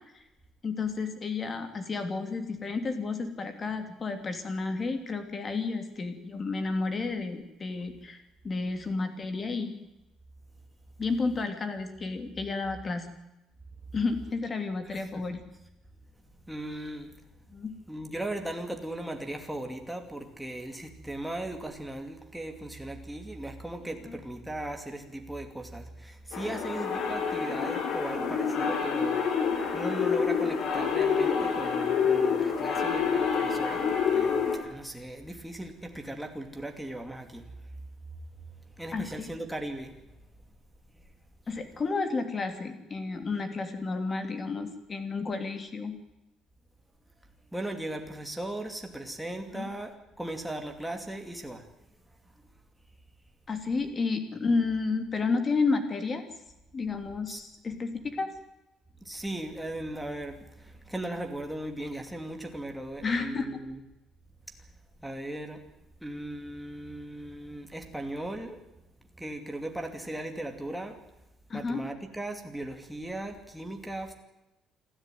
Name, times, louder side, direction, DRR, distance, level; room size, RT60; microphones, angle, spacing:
voice 1, 0.6-9.8 11.0-13.1 13.9-15.4 17.5-17.7 24.1-24.2 38.9-39.3 41.5-46.0 49.5-49.7 53.5-56.2 56.7-58.3 63.0-63.5 71.5-71.8, left 4 dB, 25° left, 8 dB, 2.8 m, -31 dB
voice 2, 14.9-15.2 16.5-17.1 17.9-29.2 29.7-37.5 38.8-40.0 47.5-51.7 57.3-57.4 59.0-63.8 65.0-65.6 66.0-68.6 69.2-71.0 71.5-74.1, right 1 dB, ahead, 4 dB, 2.7 m, -38 dB
sound 1, 26.3-34.6, left 6 dB, 55° left, 4.5 m, -27 dB
27.5 x 12.5 x 9.3 m, 0.94 s
cardioid pair, 165°, 0 cm